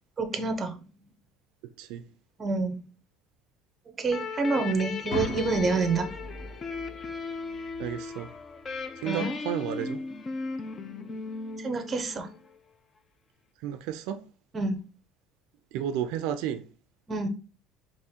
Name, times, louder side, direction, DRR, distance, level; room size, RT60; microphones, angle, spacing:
voice 1, 0.2-0.8 2.4-2.8 4.0-6.1 9.1-9.4 11.6-12.3 14.5-14.8 17.1-17.3, right 3 dB, 20° right, 0.6 m, -27 dB
sound 1, 4.1-12.6, left 4 dB, 25° left, 0.4 m, -37 dB
sound 2, 5.1-9.1, left 2 dB, 40° left, 1.3 m, -40 dB
voice 2, 7.8-8.3 9.0-10.0 13.6-14.2 15.7-16.6, right 10 dB, 70° right, 0.4 m, -32 dB
3.6 x 3.0 x 4.2 m
cardioid pair, 160°, 0 cm